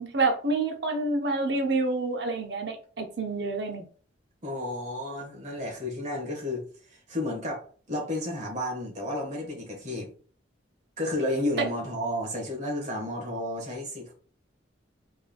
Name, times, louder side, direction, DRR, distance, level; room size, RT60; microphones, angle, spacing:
voice 1, 0.0-3.8, right 3 dB, 60° right, 0.7 m, -28 dB
voice 2, 4.4-10.1 11.0-14.1, left 1 dB, 35° right, 1.2 m, -32 dB
3.6 x 3.3 x 2.2 m
head